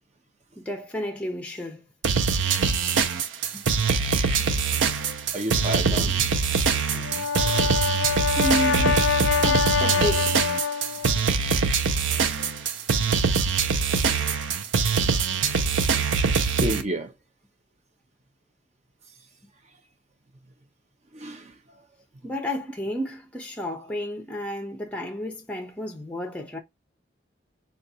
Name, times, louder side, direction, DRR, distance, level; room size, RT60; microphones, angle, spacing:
voice 1, 0.6-1.9 3.5-3.6 4.1-4.5 7.7-7.8 8.3-9.1 9.4-10.4 15.0-15.1 16.0-16.2 22.2-26.6, equal, 5° left, 0.5 m, -32 dB
sound 1, 2.0-16.8, right 5 dB, 90° right, 0.5 m, -23 dB
voice 2, 5.3-6.3 7.4-7.8 12.1-12.2 16.5-17.1 21.1-21.5, right 1 dB, 35° right, 0.6 m, -31 dB
Brass instrument, 6.9-11.2, left 7 dB, 90° left, 0.3 m, -25 dB
3.9 x 2.3 x 2.6 m
head